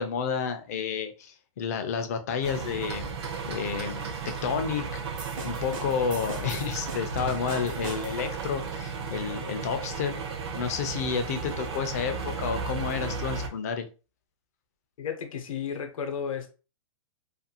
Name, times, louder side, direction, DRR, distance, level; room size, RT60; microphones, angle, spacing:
voice 1, 0.0-3.1 3.5-4.0 4.4-5.0 5.4-10.1 10.5-13.9, left 6 dB, 30° left, 0.4 m, -30 dB
sound 1, 2.4-13.5, right 5 dB, 50° right, 0.5 m, -34 dB
sound 2, 5.2-8.4, right 3 dB, 70° right, 1.0 m, -39 dB
voice 2, 15.0-16.5, left 7 dB, 75° left, 0.7 m, -33 dB
2.5 x 2.3 x 2.7 m
hypercardioid pair, 170°, 18 cm